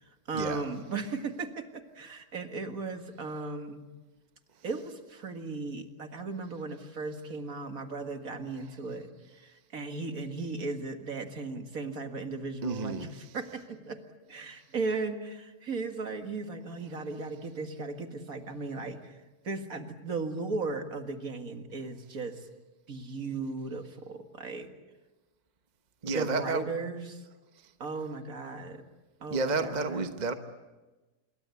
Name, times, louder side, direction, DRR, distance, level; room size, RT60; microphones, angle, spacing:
voice 1, 0.0-3.9 4.6-14.0 14.3-22.4 22.9-24.7 26.0-27.2 27.8-28.8 29.2-30.1, right 3 dB, 55° right, 2.3 m, -36 dB
voice 2, 12.6-13.1 26.0-26.6 29.3-30.3, right 4 dB, 30° right, 1.1 m, -30 dB
26.0 x 23.0 x 8.4 m
omnidirectional pair, 1.8 m